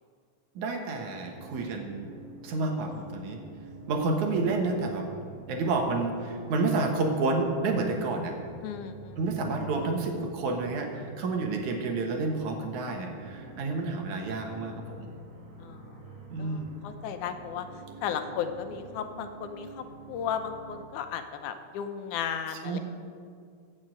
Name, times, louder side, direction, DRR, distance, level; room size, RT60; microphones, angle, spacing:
voice 1, 0.6-2.1 2.4-3.4 3.9-5.1 5.5-8.3 9.2-15.1 16.3-16.7 22.5-22.8, right 3 dB, 70° right, 3 dB, 2.7 m, -29 dB
sound 1, 1.2-20.9, right 3 dB, 50° right, 1.4 m, -48 dB
voice 2, 8.6-9.2 15.6-15.9 16.4-17.7 18.0-22.8, left 8 dB, 80° left, 8 dB, 2.2 m, -35 dB
15.5 x 6.5 x 7.6 m, 2.2 s
omnidirectional pair, 3.6 m